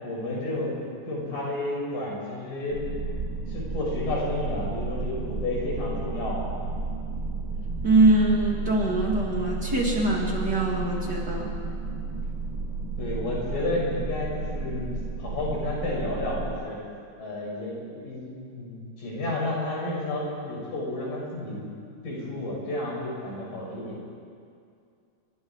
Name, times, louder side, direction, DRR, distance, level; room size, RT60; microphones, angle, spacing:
voice 1, 0.0-2.8 3.5-6.5 13.0-14.9 15.2-16.8 17.2-21.7 22.0-24.0, left 2 dB, 85° left, -4 dB, 8.3 m, -31 dB
sound 1, 2.7-16.5, right 3 dB, 65° right, 8.6 m, -32 dB
voice 2, 7.8-11.6, right 2 dB, 35° right, -2 dB, 2.7 m, -23 dB
28.5 x 24.5 x 4.8 m, 2.3 s
omnidirectional pair, 3.8 m